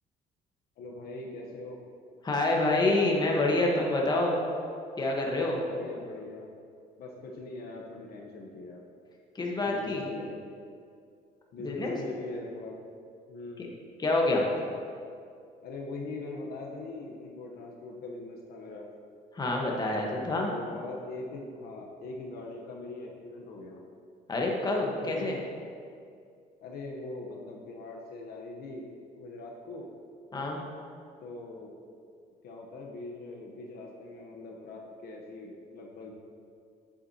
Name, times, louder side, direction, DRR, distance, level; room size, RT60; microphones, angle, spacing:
voice 1, 0.8-1.8 5.5-6.5 7.0-8.8 9.7-10.4 11.5-12.7 13.3-13.8 15.6-18.9 20.1-23.8 25.0-25.3 26.6-28.9 29.2-29.9 31.2-31.7 32.4-36.1, left 2 dB, 65° left, 0 dB, 1.0 m, -41 dB
voice 2, 2.2-4.4 5.0-5.6 9.4-10.0 11.6-11.9 14.0-14.5 19.3-20.5 24.3-25.4 30.3-30.6, left 2 dB, 25° left, -1 dB, 1.3 m, -27 dB
8.6 x 7.9 x 2.9 m, 2.3 s
cardioid pair, 110°, 17 cm